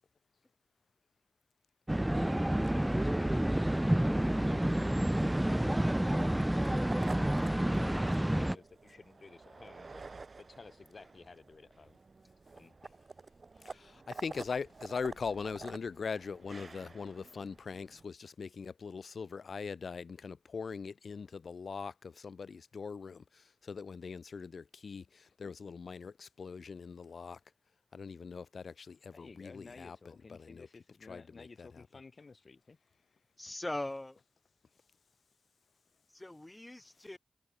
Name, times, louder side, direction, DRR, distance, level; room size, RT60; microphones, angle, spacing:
sound 1, 1.9-8.6, right 1 dB, 15° right, 0.4 m, -29 dB
voice 1, 2.1-5.8 6.1-10.0 10.4-12.0 12.5-12.7 29.1-32.8, left 4 dB, 65° left, 5.5 m, -53 dB
sound 2, 6.2-18.0, right 4 dB, 60° right, 1.3 m, -50 dB
voice 2, 14.2-23.2 23.7-25.0 25.4-27.4 27.9-30.0 30.3-30.7 31.0-31.8, left 5 dB, 85° left, 2.3 m, -41 dB
voice 3, 33.4-34.2 36.1-37.2, left 1 dB, 25° left, 1.5 m, -40 dB
cardioid pair, 50°, 0 cm